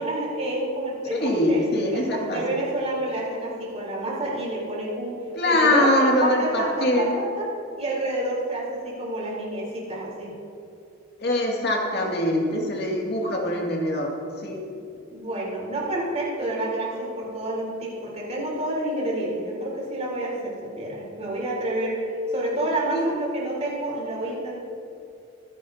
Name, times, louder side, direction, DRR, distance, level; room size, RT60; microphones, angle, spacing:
voice 1, 0.0-5.2 5.5-5.9 6.2-7.5 7.8-10.3 15.1-24.6, right 1 dB, 35° right, -5 dB, 3.8 m, -29 dB
voice 2, 1.1-2.4 5.4-7.2 11.2-14.1 14.4-14.6 22.9-23.1, left 1 dB, 55° left, -1 dB, 2.2 m, -23 dB
25.0 x 10.5 x 2.8 m, 2.6 s
head